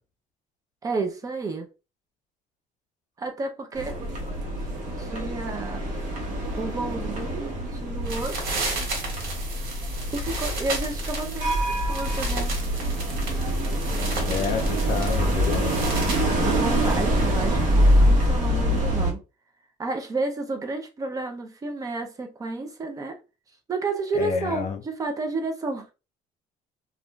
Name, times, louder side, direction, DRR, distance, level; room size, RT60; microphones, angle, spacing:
voice 1, 0.8-1.7 3.2-4.0 5.0-5.8 6.5-8.4 10.1-12.5 16.4-19.2 19.8-23.2 23.7-25.9, right 3 dB, 20° right, 0.5 m, -31 dB
sound 1, 3.7-19.1, equal, 55° right, 1.0 m, -25 dB
sound 2, 8.0-16.2, right 3 dB, 75° right, 1.4 m, -34 dB
voice 2, 14.3-15.9 24.1-24.8, left 6 dB, 50° left, 0.5 m, -29 dB
2.4 x 2.2 x 3.0 m
cardioid pair, 150°, 16 cm